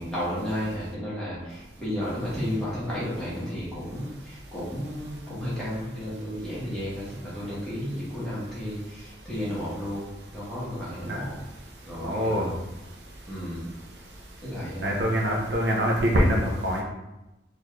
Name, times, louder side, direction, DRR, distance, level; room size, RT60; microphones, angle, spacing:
voice 1, 0.0-11.3 11.8-12.5 13.3-13.7 14.4-15.0, equal, 5° left, -10 dB, 1.3 m, -33 dB
voice 2, 12.0-12.5 14.8-16.8, equal, 70° right, -1 dB, 0.6 m, -24 dB
4.1 x 2.5 x 3.1 m, 0.97 s
head